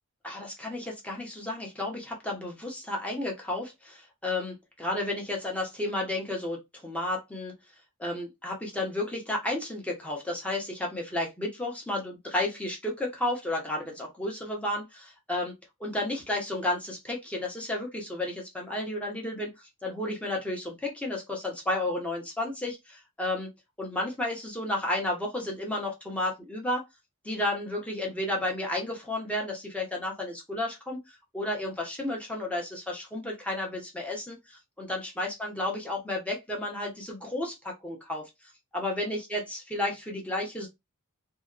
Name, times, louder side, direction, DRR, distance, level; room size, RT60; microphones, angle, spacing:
voice 1, 0.2-7.6 8.0-19.5 19.8-23.5 23.8-26.8 27.2-38.3 38.7-40.7, left 1 dB, 5° left, 0.8 m, -32 dB
2.7 x 2.1 x 2.3 m
head